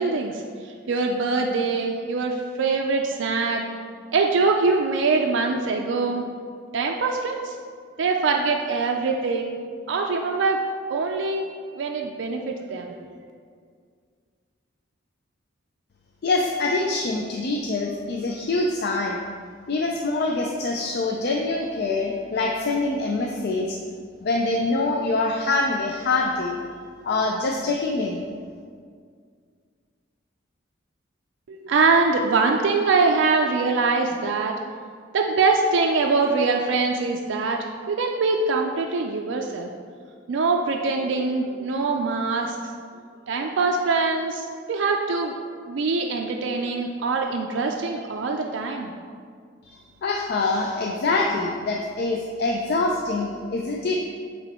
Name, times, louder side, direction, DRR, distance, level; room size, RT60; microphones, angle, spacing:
voice 1, 0.0-3.6 4.1-6.3 6.7-7.6 8.0-9.6 9.9-10.6 10.9-11.5 11.7-13.1 31.5-34.5 35.1-39.7 40.3-42.7 43.3-45.3 45.7-48.9, right 4 dB, 65° right, 1 dB, 0.4 m, -23 dB
voice 2, 16.2-19.2 19.7-23.8 24.2-26.6 27.0-28.2 50.0-54.0, left 3 dB, 55° left, 1 dB, 0.4 m, -25 dB
8.0 x 3.1 x 4.3 m, 2.1 s
head